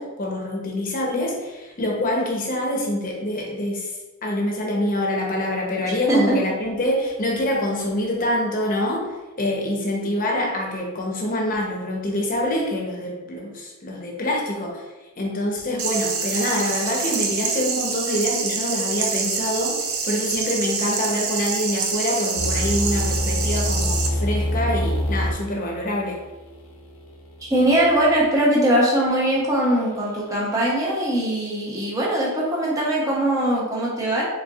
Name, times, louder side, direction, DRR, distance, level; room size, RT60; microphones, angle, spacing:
voice 1, 0.0-3.9 4.2-14.8 15.2-26.2, left 1 dB, 40° left, -1 dB, 0.8 m, -25 dB
sound 1, 15.8-24.1, right 5 dB, 80° right, 0.6 m, -26 dB
sound 2, 22.4-28.3, left 1 dB, 75° left, 0.8 m, -26 dB
voice 2, 27.4-34.2, right 1 dB, 15° right, -5 dB, 0.7 m, -21 dB
4.3 x 3.5 x 2.4 m, 1.1 s
head